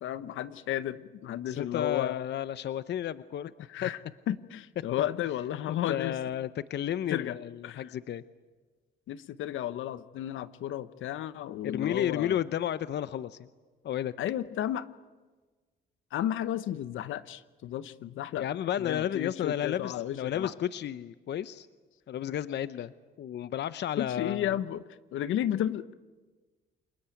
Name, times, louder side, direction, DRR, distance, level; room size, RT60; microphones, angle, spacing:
voice 1, 0.0-2.1 3.7-4.0 4.3-6.2 7.1-7.3 7.6-7.9 9.1-12.4 14.2-14.9 16.1-18.4 18.8-20.5 24.0-24.8 25.1-25.9, left 11 dB, 80° left, 14 dB, 1.0 m, -33 dB
voice 2, 1.5-3.5 3.8-3.9 5.7-8.2 11.6-13.5 13.8-14.1 18.4-21.7 22.1-24.6, left 10 dB, 60° left, 14 dB, 0.7 m, -32 dB
29.5 x 20.5 x 9.1 m, 1.3 s
cardioid pair, 90°, 20 cm